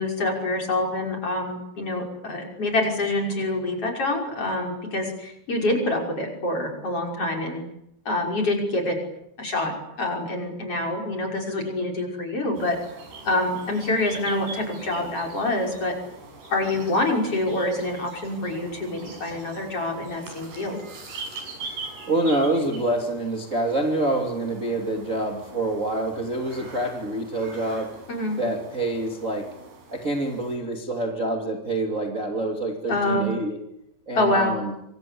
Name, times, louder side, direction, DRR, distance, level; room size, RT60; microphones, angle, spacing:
voice 1, 0.0-7.6 8.1-9.0 9.4-12.8 13.2-16.0 16.5-20.8 28.1-28.4 32.9-33.3 34.1-34.6, left 2 dB, 35° left, 2 dB, 6.5 m, -26 dB
sound 1, 12.5-30.6, right 3 dB, 70° right, 8.8 m, -42 dB
voice 2, 22.1-27.9 28.4-29.5 29.9-33.6 34.1-34.7, right 2 dB, 20° right, 2 dB, 2.6 m, -26 dB
26.5 x 26.5 x 8.6 m, 0.80 s
omnidirectional pair, 4.7 m